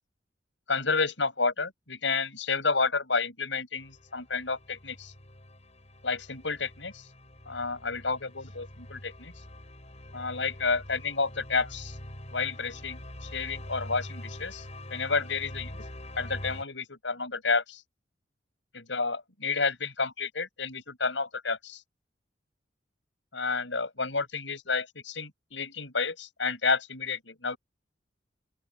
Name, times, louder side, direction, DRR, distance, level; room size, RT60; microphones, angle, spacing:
voice 1, 0.7-5.1 6.0-7.0 7.5-9.3 10.1-12.0 12.3-14.6 14.9-15.8 16.2-17.8 18.7-21.8 23.3-27.6, left 4 dB, 85° left, 6.2 m, -30 dB
sound 1, 3.8-16.6, left 1 dB, 35° left, 5.6 m, -44 dB
open air
head